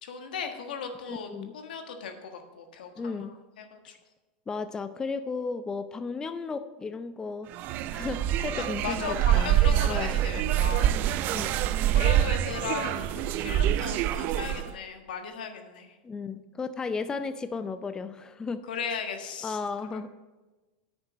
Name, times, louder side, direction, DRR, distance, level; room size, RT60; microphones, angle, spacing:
voice 1, 0.0-3.9 8.4-11.0 11.9-16.0 18.7-19.6 19.9-20.1, left 6 dB, 85° left, 5 dB, 1.5 m, -37 dB
voice 2, 1.1-1.6 3.0-3.4 4.5-7.5 7.9-9.6 9.8-10.2 11.3-11.6 16.0-18.7 19.4-20.1, left 4 dB, 15° left, 11 dB, 0.4 m, -34 dB
sound 1, 7.5-14.7, right 12 dB, 45° right, 0.5 m, -25 dB
9.3 x 6.7 x 6.0 m, 1.2 s
supercardioid pair, 125°, 5 cm